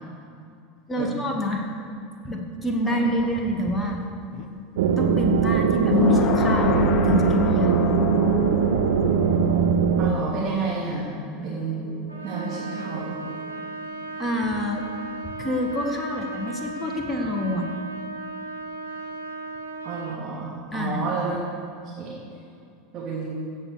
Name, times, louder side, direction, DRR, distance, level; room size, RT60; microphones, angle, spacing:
voice 1, 0.9-1.7 2.2-4.0 5.0-7.8 14.2-14.8 15.4-17.7 20.7-21.0, equal, 15° left, 2 dB, 1.7 m, -27 dB
sound 1, 3.2-14.3 14.6-14.7, left 9 dB, 40° left, 0.8 m, -29 dB
sound 2, 4.8-10.1, right 7 dB, 60° right, 0.6 m, -21 dB
voice 2, 10.0-11.1 11.4-11.8 12.2-13.1 19.8-21.4 22.0-22.2 22.9-23.4, right 4 dB, 35° right, -8 dB, 3.3 m, -30 dB
Trumpet, 12.1-20.3, right 3 dB, 85° right, 1.5 m, -36 dB
17.0 x 6.6 x 6.9 m, 2.4 s
figure-of-eight pair, 80°, 0 cm